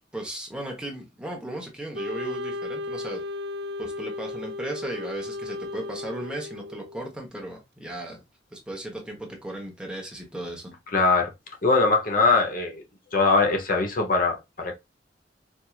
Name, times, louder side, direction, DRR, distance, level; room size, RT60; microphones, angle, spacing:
voice 1, 0.1-3.2 3.8-8.2 8.5-10.7, right 1 dB, 5° right, 1.0 m, -36 dB
Wind instrument woodwind instrument, 1.9-7.1, left 2 dB, 65° right, 0.5 m, -35 dB
voice 2, 10.9-11.3 11.6-12.8 13.1-14.7, left 3 dB, 50° left, 0.8 m, -21 dB
4.5 x 2.6 x 2.3 m
head